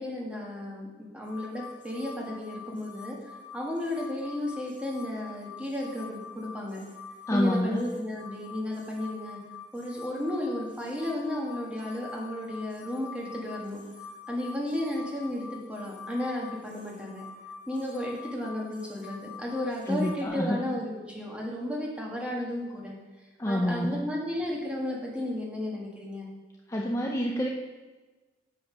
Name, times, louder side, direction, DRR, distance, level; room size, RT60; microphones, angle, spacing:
voice 1, 0.0-6.8 7.3-9.4 9.7-13.8 14.3-17.2 17.7-22.9 23.4-26.3, left 1 dB, 5° right, -3 dB, 1.5 m, -33 dB
sound 1, 1.2-20.3, left 5 dB, 45° left, 1.6 m, -46 dB
voice 2, 7.3-7.8 19.9-20.6 23.4-24.0 26.7-27.5, left 1 dB, 15° left, -1 dB, 0.5 m, -27 dB
7.2 x 5.7 x 5.5 m, 1.2 s
head